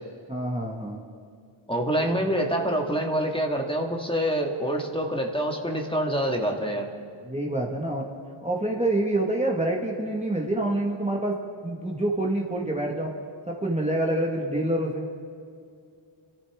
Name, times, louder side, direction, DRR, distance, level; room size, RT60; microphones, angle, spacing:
voice 1, 0.3-1.0 7.2-8.0 8.4-11.4 11.6-13.1 13.5-15.1, right 1 dB, 15° right, -1 dB, 1.5 m, -27 dB
voice 2, 1.7-6.9, equal, 10° left, 1 dB, 1.7 m, -26 dB
27.5 x 13.0 x 3.6 m, 2.4 s
wide cardioid pair, 45°, 49 cm